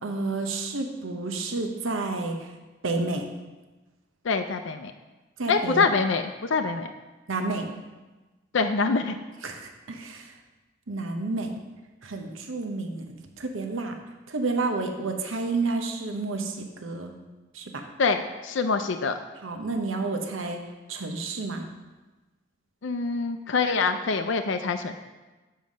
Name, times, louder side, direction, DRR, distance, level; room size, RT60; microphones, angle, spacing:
voice 1, 0.0-2.5 2.8-3.3 5.4-5.9 7.3-7.7 9.4-10.3 10.9-11.5 12.0-13.0 13.4-14.0 14.3-17.1 17.5-17.9 19.4-20.6 20.9-21.7, right 3 dB, 85° right, 4 dB, 0.9 m, -30 dB
voice 2, 4.2-4.9 5.5-6.9 8.5-9.2 18.0-19.2 22.8-24.9, left 4 dB, 70° left, 7 dB, 0.5 m, -25 dB
7.2 x 5.5 x 6.3 m, 1.2 s
head